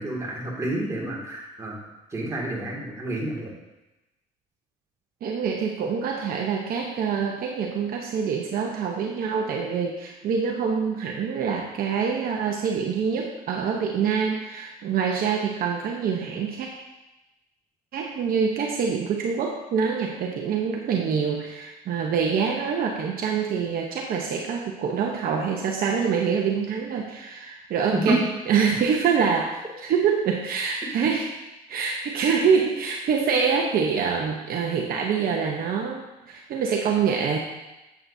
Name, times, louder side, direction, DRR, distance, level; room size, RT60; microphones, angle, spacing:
voice 1, 0.0-1.8 2.1-3.5 27.9-28.2, right 1 dB, 20° right, -4 dB, 2.4 m, -28 dB
voice 2, 5.2-16.7 17.9-31.3 31.7-37.4, right 6 dB, 60° right, 0 dB, 1.0 m, -25 dB
8.6 x 8.2 x 2.8 m, 1.0 s
cardioid pair, 110°, 17 cm